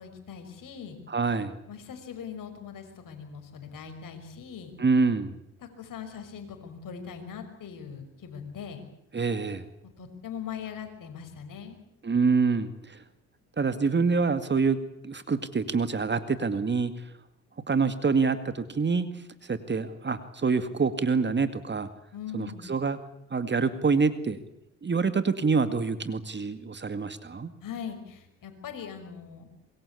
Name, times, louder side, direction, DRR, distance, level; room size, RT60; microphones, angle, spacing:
voice 1, 0.0-1.0 1.7-4.8 5.6-8.8 9.8-11.8 22.1-22.7 27.6-29.5, left 7 dB, 50° left, 6 dB, 6.0 m, -41 dB
voice 2, 1.1-1.6 4.8-5.4 9.1-9.6 12.0-13.0 13.6-14.8 15.0-16.9 17.7-19.1 19.4-21.9 22.3-23.0 23.3-24.4 24.8-27.5, right 4 dB, 25° right, 11 dB, 2.2 m, -26 dB
25.5 x 22.0 x 8.5 m, 0.75 s
hypercardioid pair, 60°, 40 cm